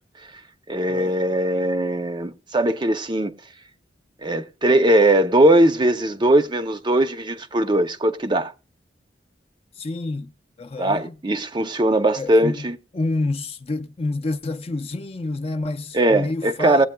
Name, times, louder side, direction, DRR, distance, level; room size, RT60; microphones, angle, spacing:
voice 1, 0.7-3.3 4.2-8.5 10.8-12.8 15.9-16.9, right 1 dB, 25° right, 0.6 m, -20 dB
voice 2, 9.8-10.3 10.6-11.1 12.2-12.6 12.9-16.9, left 2 dB, 35° left, 0.5 m, -28 dB
19.0 x 8.3 x 2.2 m
head